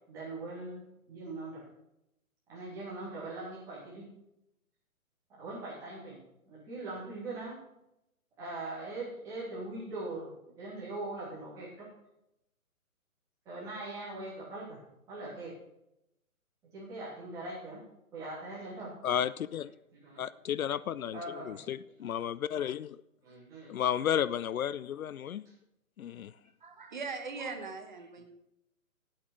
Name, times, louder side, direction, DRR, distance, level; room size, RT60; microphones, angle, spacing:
voice 1, 0.1-1.6 2.5-4.1 5.3-6.2 6.5-7.6 8.4-10.3 10.6-11.9 13.4-14.8 15.1-15.5 16.7-17.8 18.1-18.9 19.9-20.2 21.1-21.7 22.0-22.2 23.2-23.8, right 2 dB, 5° right, -9 dB, 2.9 m, -41 dB
voice 2, 19.0-19.7 20.2-23.0 23.7-25.4 26.0-26.3, left 9 dB, 70° left, 18 dB, 0.5 m, -33 dB
voice 3, 26.6-28.2, right 4 dB, 35° right, 5 dB, 1.2 m, -40 dB
9.5 x 8.8 x 6.3 m, 0.85 s
hypercardioid pair, 175°, 44 cm